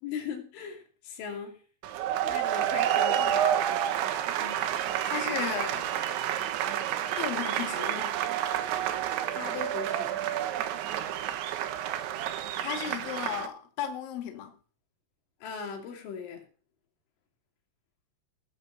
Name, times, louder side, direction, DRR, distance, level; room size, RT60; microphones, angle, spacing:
voice 1, 0.0-1.6 2.2-3.5 9.3-10.2 15.4-16.4, left 6 dB, 85° left, 3 dB, 5.3 m, -38 dB
sound 1, 1.8-13.5, right 10 dB, 75° right, 3.4 m, -29 dB
voice 2, 5.0-5.9 7.2-8.1 12.6-14.5, left 9 dB, 55° left, 4 dB, 3.3 m, -35 dB
18.5 x 6.5 x 7.1 m, 0.40 s
omnidirectional pair, 5.5 m